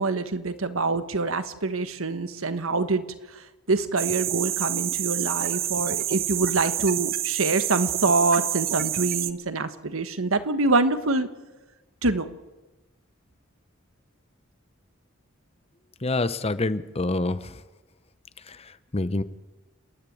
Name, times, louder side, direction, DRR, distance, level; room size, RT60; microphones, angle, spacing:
voice 1, 0.0-3.0 3.7-11.3 12.0-12.3, right 3 dB, 85° right, 11 dB, 1.4 m, -25 dB
sound 1, 4.0-9.3, right 12 dB, 45° right, 0.8 m, -28 dB
voice 2, 16.0-17.5 18.5-18.6 18.9-19.2, left 2 dB, 30° left, 14 dB, 0.8 m, -26 dB
29.0 x 10.5 x 9.2 m, 1.1 s
head